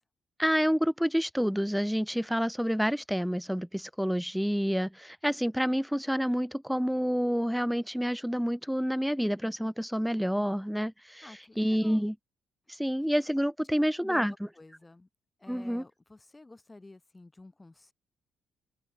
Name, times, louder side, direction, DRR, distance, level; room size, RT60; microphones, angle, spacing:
voice 1, 0.4-11.3 11.6-12.2 12.8-14.3 15.5-15.8, equal, ahead, 1.6 m, -28 dB
voice 2, 11.2-12.0 14.0-15.1 15.4-17.9, left 2 dB, 15° left, 7.7 m, -50 dB
open air
cardioid pair, 90°, 0 cm